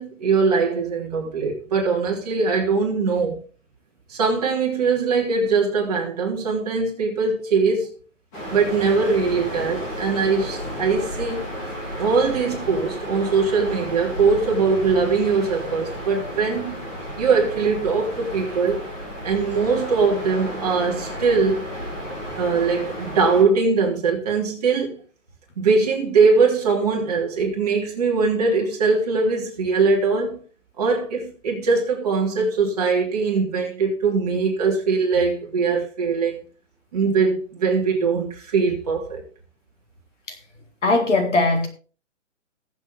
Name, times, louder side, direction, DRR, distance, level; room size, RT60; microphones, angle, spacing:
voice 1, 0.0-3.4 4.1-7.9 8.5-11.4 12.0-16.9 17.2-18.8 19.2-21.7 22.4-25.0 25.6-30.4 30.8-36.4 36.9-39.2, right 4 dB, 30° right, 3.2 m, -21 dB
sound 1, 8.3-23.4, equal, 15° left, 2.8 m, -33 dB
voice 2, 40.8-41.7, left 2 dB, 70° left, 4.2 m, -19 dB
20.0 x 7.6 x 3.5 m
hypercardioid pair, 180°, 38 cm